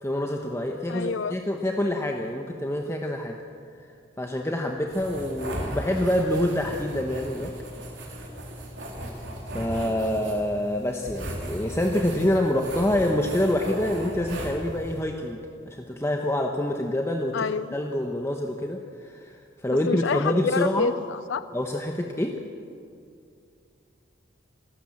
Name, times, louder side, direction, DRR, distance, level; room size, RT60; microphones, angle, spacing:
voice 1, 0.0-3.4 4.2-7.5 9.5-15.4 15.7-20.9 21.5-22.4, left 1 dB, 15° left, 2 dB, 1.0 m, -26 dB
voice 2, 0.9-1.4 17.3-17.7 19.9-21.4, left 5 dB, 75° left, 13 dB, 0.5 m, -27 dB
sound 1, 4.9-15.0, right 1 dB, 75° right, 4.0 m, -37 dB
27.0 x 13.0 x 7.7 m, 2.4 s
head